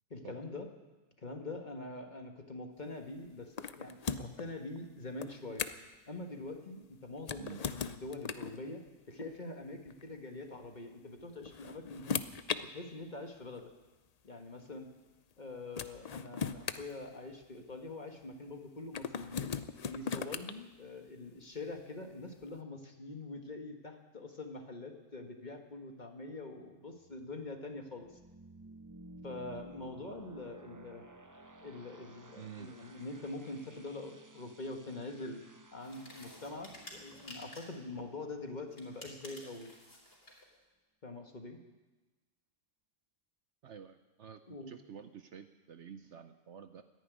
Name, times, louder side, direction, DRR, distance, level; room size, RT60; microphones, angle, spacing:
voice 1, 0.1-0.7 1.2-5.7 6.1-8.8 9.1-12.2 12.7-13.7 14.2-14.9 15.4-19.5 19.8-28.1 29.2-31.0 31.6-35.4 35.7-39.7 41.0-41.6 44.5-44.7, left 2 dB, 35° left, 4 dB, 1.5 m, -44 dB
sound 1, 3.6-4.4 5.2-5.9 7.2-8.6 9.9-10.0 11.2-12.6 13.6-13.7 15.3-15.4 15.8-17.6 18.9-20.5, left 6 dB, 70° left, 0.3 m, -38 dB
voice 2, 7.3-7.7 32.4-32.7 43.6-44.4 44.7-46.8, right 8 dB, 60° right, 9 dB, 0.9 m, -49 dB
sound 2, 26.9-39.5, right 2 dB, 20° right, 0.5 m, -56 dB
sound 3, 35.8-37.8 38.7-40.5, left 1 dB, 50° left, 3.7 m, -52 dB
14.0 x 10.0 x 9.3 m, 1.1 s
omnidirectional pair, 1.5 m